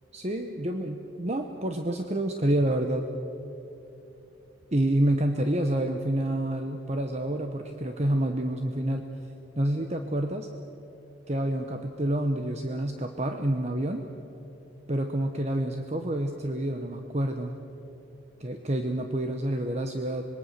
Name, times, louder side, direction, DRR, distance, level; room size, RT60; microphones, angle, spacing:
voice 1, 0.1-3.1 4.7-9.0 9.6-10.5 11.3-14.0 14.9-17.6 18.4-20.3, right 1 dB, 35° right, 5 dB, 1.0 m, -28 dB
26.0 x 21.5 x 6.7 m, 2.9 s
head